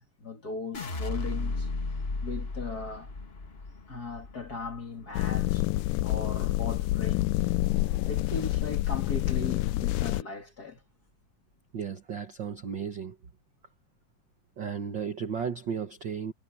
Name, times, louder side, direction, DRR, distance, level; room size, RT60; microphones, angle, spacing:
voice 1, 0.0-1.7 2.2-3.1 3.9-5.7 6.0-7.5 8.0-10.8, left 4 dB, 35° left, 2.0 m, -38 dB
sound 1, 0.7-6.9 7.3-7.9, left 3 dB, 55° left, 0.6 m, -36 dB
sound 2, 5.1-10.2, left 17 dB, 80° left, 2.1 m, -27 dB
voice 2, 11.7-13.2 14.6-16.3, right 7 dB, 60° right, 1.2 m, -34 dB
omnidirectional pair, 3.9 m